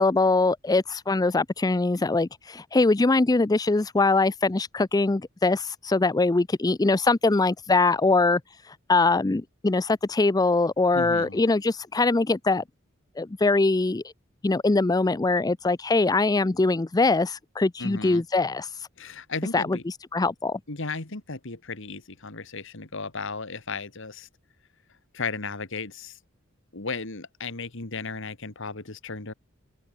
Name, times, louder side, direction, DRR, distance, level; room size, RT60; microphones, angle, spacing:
voice 1, 0.0-8.4 8.7-12.6 13.2-14.0 14.4-18.9 19.5-20.6, left 3 dB, 20° left, 0.4 m, -22 dB
voice 2, 10.9-11.4 17.8-18.2 19.0-19.8 20.7-24.3 25.1-26.2 26.7-29.3, left 4 dB, 65° left, 2.2 m, -35 dB
open air
head